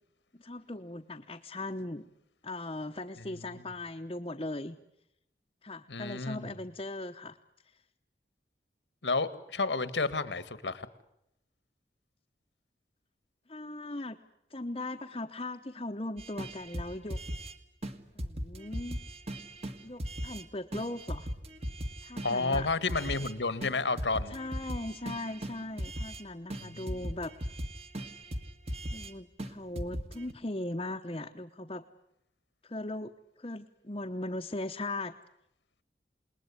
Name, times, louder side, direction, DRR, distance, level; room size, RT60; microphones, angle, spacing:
voice 1, 0.3-2.0 2.4-4.8 5.6-7.4 7.6-7.7 13.5-14.2 14.5-17.2 18.1-19.0 19.8-21.3 22.0-22.7 24.3-27.3 28.9-31.8 32.6-33.1 33.4-35.1, left 2 dB, 30° left, 2 dB, 0.9 m, -39 dB
voice 2, 5.9-6.6 9.0-10.9 22.2-24.4 26.6-27.1, left 3 dB, 85° left, 14 dB, 1.7 m, -31 dB
sound 1, 16.2-17.5 17.8-17.9 18.2-20.4 20.7-23.3 23.6-23.7 24.0-26.2 26.5-29.1 29.4-29.5 29.8-30.3, equal, 35° right, 1.8 m, -38 dB
28.5 x 20.5 x 9.8 m, 0.82 s
head